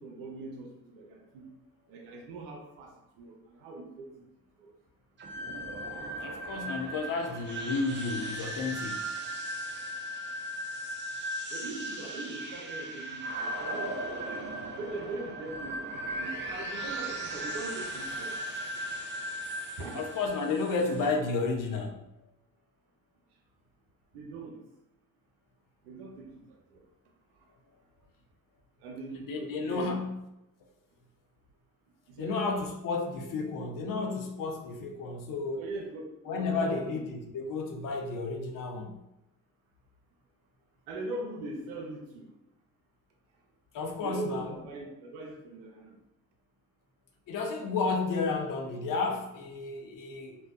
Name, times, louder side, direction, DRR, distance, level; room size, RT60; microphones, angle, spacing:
voice 1, 0.0-1.5 1.9-4.2 4.6-4.7 11.5-14.5 14.8-18.3 19.8-20.0 24.1-24.6 25.9-26.3 26.7-26.8 28.8-30.0 32.1-32.4 35.6-37.0 40.9-42.3 44.0-46.0, right 2 dB, 80° right, 1 dB, 0.5 m, -41 dB
sound 1, 5.2-21.2, right 1 dB, 25° right, 0.5 m, -37 dB
voice 2, 6.2-9.0 19.9-22.2 29.1-30.1 32.2-35.6 36.3-38.9 43.7-44.5 47.3-50.4, left 4 dB, 45° left, 3 dB, 0.6 m, -32 dB
2.6 x 2.2 x 2.2 m, 0.88 s
hypercardioid pair, 45°, 44 cm